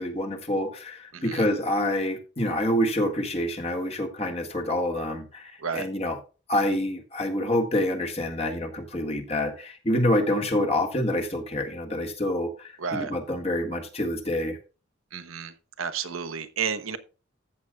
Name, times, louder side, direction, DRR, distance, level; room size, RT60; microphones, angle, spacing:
voice 1, 0.0-6.2 6.5-14.6, left 1 dB, 30° left, 1.8 m, -27 dB
voice 2, 1.1-1.4 5.6-5.9 12.8-13.1 15.1-17.0, right 6 dB, 80° right, 1.0 m, -32 dB
14.5 x 8.1 x 2.3 m
head